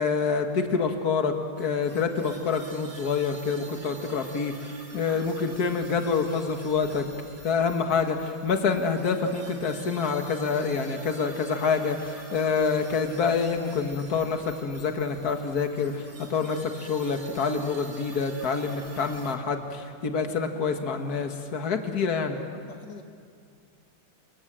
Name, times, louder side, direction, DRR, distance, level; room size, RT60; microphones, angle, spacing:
voice 1, 0.0-7.1 7.4-22.4, left 5 dB, 60° left, 5 dB, 2.2 m, -27 dB
sound 1, 1.6-19.4, right 2 dB, 50° right, 3.4 m, -48 dB
voice 2, 22.3-23.0, left 4 dB, 75° left, 4 dB, 2.1 m, -44 dB
28.0 x 25.0 x 7.6 m, 2.3 s
omnidirectional pair, 1.9 m